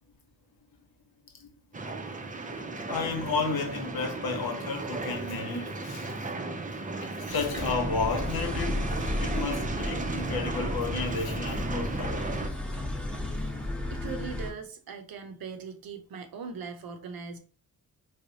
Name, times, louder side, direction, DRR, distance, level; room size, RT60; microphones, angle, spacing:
sound 1, 1.7-12.5, right 3 dB, 20° right, 0.6 m, -35 dB
voice 1, 2.9-6.1 6.7-6.8 7.1-8.9 9.2-12.2, left 4 dB, 80° left, 0.9 m, -32 dB
sound 2, 7.3-14.5, left 1 dB, 5° left, 0.8 m, -34 dB
voice 2, 13.9-17.4, right 5 dB, 70° right, 0.7 m, -40 dB
3.2 x 2.1 x 3.9 m
cardioid pair, 60°, 36 cm